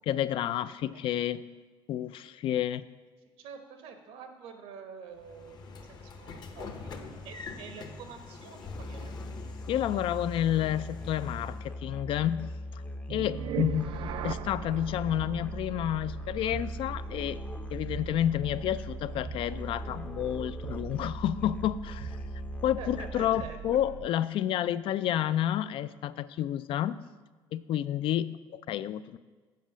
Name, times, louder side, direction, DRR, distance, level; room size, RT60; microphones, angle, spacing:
voice 1, 0.0-1.5 1.9-2.9 9.7-12.8 13.1-17.4 17.7-22.2 22.6-27.0 27.5-29.2, left 11 dB, 65° left, 15 dB, 0.4 m, -30 dB
voice 2, 3.4-6.9 7.2-9.1 13.4-13.5 22.8-23.6, right 6 dB, 90° right, 6 dB, 1.1 m, -46 dB
Train / Sliding door, 5.2-11.7, left 4 dB, 45° left, 0.9 m, -45 dB
Musical instrument, 8.6-23.4, left 1 dB, 15° left, 0.5 m, -40 dB
sound 1, 13.1-24.2, right 11 dB, 60° right, 0.3 m, -41 dB
7.5 x 5.1 x 7.3 m, 1.4 s
cardioid pair, 115°, 10 cm